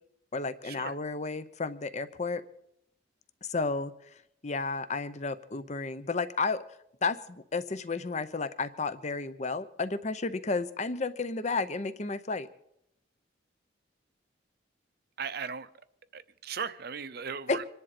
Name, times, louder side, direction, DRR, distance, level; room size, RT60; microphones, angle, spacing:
voice 1, 0.3-2.4 3.4-3.9 4.4-6.6 7.0-12.5 17.5-17.6, left 4 dB, 35° left, 13 dB, 0.7 m, -32 dB
voice 2, 15.2-15.7 16.1-17.6, right 6 dB, 55° right, 13 dB, 0.7 m, -37 dB
26.5 x 10.5 x 4.2 m, 0.79 s
head